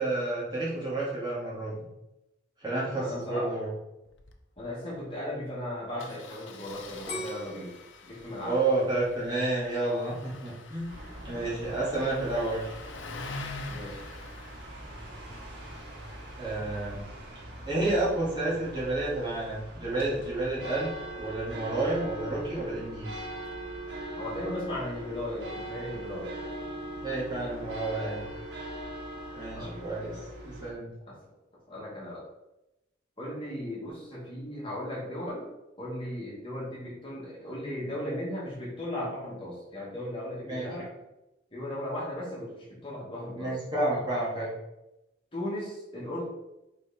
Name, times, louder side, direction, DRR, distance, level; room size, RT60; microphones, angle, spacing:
voice 1, 0.0-1.7 2.6-3.7 8.4-10.9 11.2-12.7 16.4-17.0 17.7-20.9 21.2-23.1 27.0-28.3 29.3-30.2 30.4-30.9 40.4-40.7 43.3-44.5, right 2 dB, 25° right, -7 dB, 2.1 m, -30 dB
voice 2, 3.0-3.5 4.6-7.7 8.0-8.6 11.3-11.7 13.7-14.0 24.2-26.3 29.5-30.3 31.1-31.4 31.7-32.2 33.2-35.5 35.8-40.9 41.5-43.6 45.3-46.3, left 1 dB, 30° left, -6 dB, 2.4 m, -37 dB
Engine starting, 4.1-4.3 4.6-4.7 4.9-5.1 6.0-17.1, left 3 dB, 85° left, 0.8 m, -46 dB
sound 1, 7.1-10.0 10.5-11.0, left 1 dB, 55° left, 1.9 m, -41 dB
sound 2, 10.9-30.7, right 1 dB, 80° right, 2.2 m, -41 dB
5.1 x 5.0 x 4.4 m, 0.91 s
head